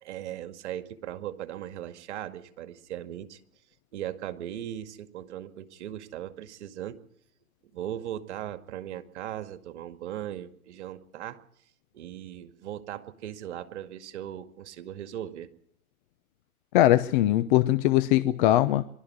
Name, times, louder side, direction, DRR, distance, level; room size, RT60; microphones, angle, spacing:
voice 1, 0.0-3.4 3.9-7.0 7.7-11.4 11.9-15.5, right 11 dB, 50° right, 2.1 m, -38 dB
voice 2, 16.7-18.8, left 14 dB, 35° left, 0.9 m, -21 dB
24.0 x 12.5 x 9.6 m
hypercardioid pair, 120°, 44 cm